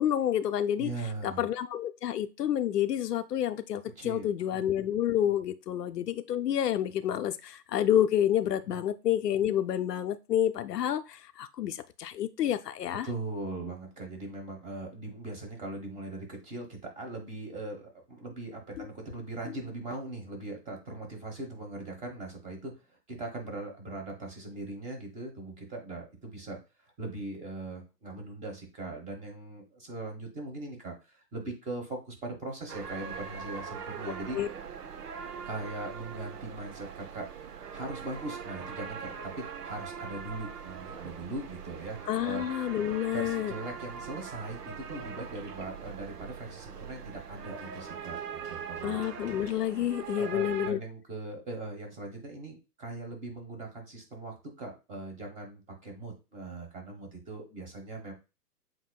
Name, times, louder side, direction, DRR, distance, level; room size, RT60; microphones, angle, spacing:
voice 1, 0.0-0.9 1.2-13.1 18.8-18.9 34.3-34.5 42.1-43.5 48.8-50.8, left 10 dB, 75° left, 9 dB, 0.6 m, -29 dB
voice 2, 0.8-1.4 4.0-4.7 13.0-22.8 23.1-34.4 35.3-37.3 37.7-42.0 42.2-42.5 43.1-49.3 50.2-58.1, right 2 dB, 15° right, 2 dB, 1.1 m, -40 dB
sound 1, 32.7-50.7, right 6 dB, 70° right, 0.8 m, -41 dB
7.5 x 2.7 x 2.2 m, 0.28 s
hypercardioid pair, 130°, 48 cm